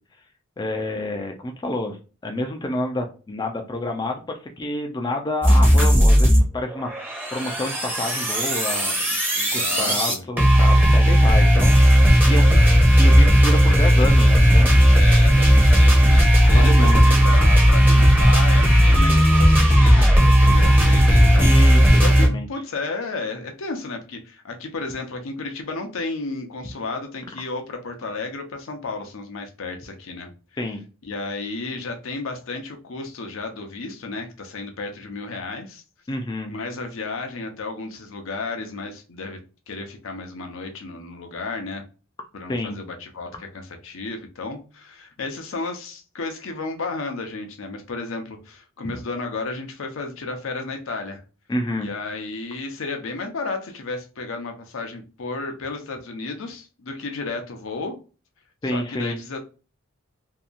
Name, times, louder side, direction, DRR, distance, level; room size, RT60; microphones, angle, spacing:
voice 1, 0.6-9.1 9.5-12.6 13.0-15.0 16.4-17.2 21.4-22.5 30.6-30.8 36.1-36.5 42.5-42.8 51.5-51.9 58.6-59.2, left 1 dB, 20° left, 3 dB, 0.3 m, -29 dB
sound 1, 5.4-6.4 6.7-22.3, equal, 10° right, 0.7 m, -15 dB
voice 2, 9.3-10.2 12.3-12.7 14.9-30.3 31.0-35.8 36.5-39.4 39.7-41.8 42.3-51.2 51.8-58.0 58.7-59.4, left 3 dB, 75° left, 4 dB, 0.6 m, -33 dB
2.7 x 2.3 x 2.4 m, 0.34 s
head